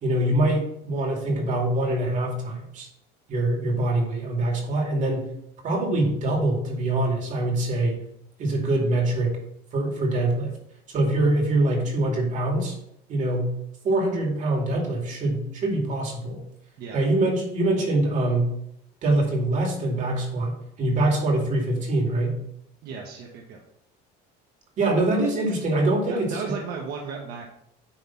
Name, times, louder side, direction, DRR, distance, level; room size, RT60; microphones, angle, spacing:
voice 1, 0.0-2.9 3.3-5.3 5.6-8.0 8.4-9.4 9.7-10.6 10.9-12.7 13.1-13.5 13.8-16.4 16.9-18.5 19.0-22.4 24.8-26.4, right 2 dB, 40° right, 1 dB, 2.5 m, -24 dB
voice 2, 22.8-23.6 26.1-27.4, right 5 dB, 55° right, 0 dB, 1.2 m, -34 dB
10.0 x 3.6 x 5.7 m, 0.76 s
cardioid pair, 140°, 19 cm